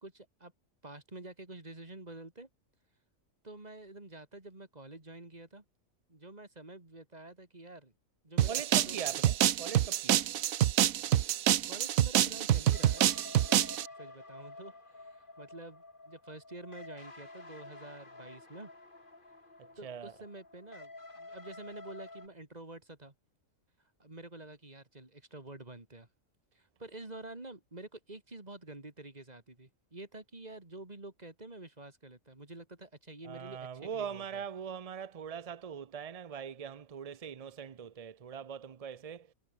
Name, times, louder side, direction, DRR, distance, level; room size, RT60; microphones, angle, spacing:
voice 1, 0.0-0.5 0.8-2.5 3.4-5.6 6.1-7.9 8.2-9.2 11.7-13.1 14.0-18.7 19.8-23.1 24.0-26.1 26.5-34.4, right 2 dB, 30° right, 3.1 m, -48 dB
sound 1, 8.4-13.9, right 12 dB, 75° right, 1.2 m, -27 dB
voice 2, 8.5-10.3 19.6-20.1 33.2-39.3, right 7 dB, 50° right, 0.4 m, -42 dB
sound 2, 12.7-22.3, left 2 dB, 35° left, 3.2 m, -50 dB
omnidirectional pair, 1.5 m